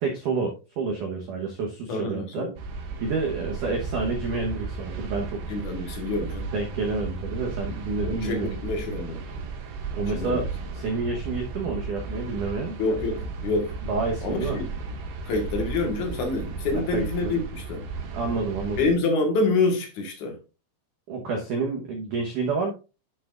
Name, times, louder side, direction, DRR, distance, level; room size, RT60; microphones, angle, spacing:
voice 1, 0.0-2.5 3.0-5.4 6.5-8.6 9.9-10.4 10.7-12.8 13.9-14.6 16.7-17.4 18.1-18.9 21.1-22.7, right 4 dB, 85° right, 1.8 m, -29 dB
voice 2, 1.9-2.5 5.5-6.5 8.0-9.2 10.1-10.5 12.8-13.8 14.2-14.7 15.3-17.9 18.8-20.4, left 3 dB, 60° left, 2.1 m, -27 dB
sound 1, 2.6-18.9, right 4 dB, 65° right, 3.1 m, -34 dB
11.5 x 6.9 x 2.5 m
omnidirectional pair, 5.6 m